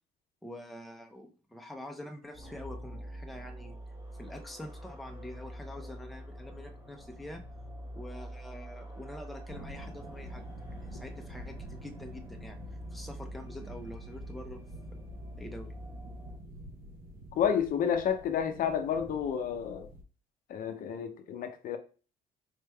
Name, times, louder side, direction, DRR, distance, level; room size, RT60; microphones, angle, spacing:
voice 1, 0.4-3.8 4.2-7.4 8.0-10.4 10.7-12.6 12.9-14.6 15.4-15.7, left 1 dB, ahead, 0.5 m, -45 dB
sound 1, 2.3-16.4, equal, 20° right, 1.1 m, -45 dB
sound 2, 9.5-20.0, right 1 dB, 55° right, 0.8 m, -48 dB
voice 2, 17.3-19.9 20.5-21.8, left 8 dB, 55° left, 0.5 m, -30 dB
4.2 x 3.2 x 2.2 m
cardioid pair, 110°, 17 cm